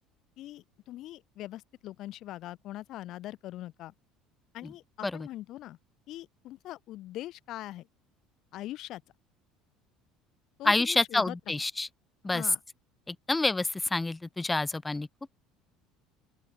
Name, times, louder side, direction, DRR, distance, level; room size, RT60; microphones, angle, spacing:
voice 1, 0.4-3.9 4.5-5.8 6.1-7.9 8.5-9.0 10.6-11.6 12.3-12.6, left 15 dB, 50° left, 3.5 m, -42 dB
voice 2, 10.6-11.9 12.2-12.4 13.1-15.1, left 2 dB, 10° left, 0.6 m, -28 dB
open air
cardioid pair, 145°, 0 cm